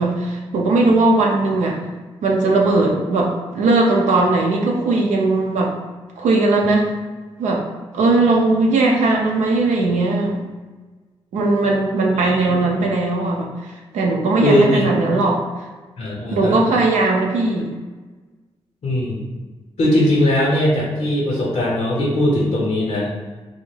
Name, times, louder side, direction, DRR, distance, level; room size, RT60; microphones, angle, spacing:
voice 1, 0.0-1.8 2.2-5.7 6.2-6.9 7.4-7.6 7.9-10.4 11.3-15.4 16.3-17.7, right 2 dB, 85° right, -1 dB, 0.4 m, -18 dB
voice 2, 12.2-12.5 14.4-14.9 16.0-16.6 18.8-19.3 19.8-23.1, left 1 dB, 70° left, -5 dB, 0.7 m, -19 dB
2.3 x 2.0 x 3.1 m, 1.3 s
supercardioid pair, 40°, 12 cm